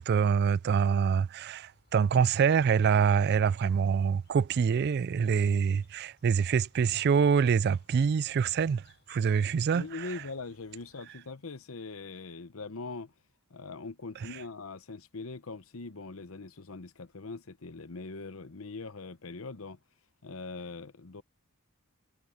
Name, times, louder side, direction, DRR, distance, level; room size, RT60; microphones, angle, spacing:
voice 1, 0.0-8.8 9.1-10.1, right 6 dB, 50° right, 0.3 m, -25 dB
sound 1, 1.4-11.0, left 3 dB, 50° left, 6.7 m, -66 dB
voice 2, 9.7-13.1 13.5-19.8 20.2-21.2, left 3 dB, 70° left, 0.9 m, -42 dB
head